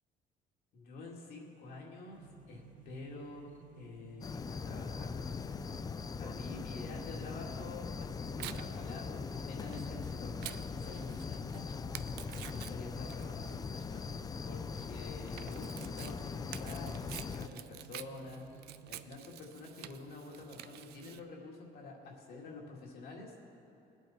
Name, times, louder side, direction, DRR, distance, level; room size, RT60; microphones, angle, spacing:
voice 1, 0.7-5.9 6.2-11.6 12.3-14.1 14.4-23.3, left 3 dB, 70° left, -1 dB, 2.2 m, -48 dB
sound 1, 2.1-19.2, right 7 dB, 50° right, 0.9 m, -56 dB
sound 2, 4.2-17.5, left 5 dB, 20° left, 0.3 m, -41 dB
Tearing, 7.7-21.2, right 13 dB, 75° right, 0.5 m, -50 dB
19.5 x 8.4 x 4.3 m, 2.7 s
cardioid pair, 110°, 17 cm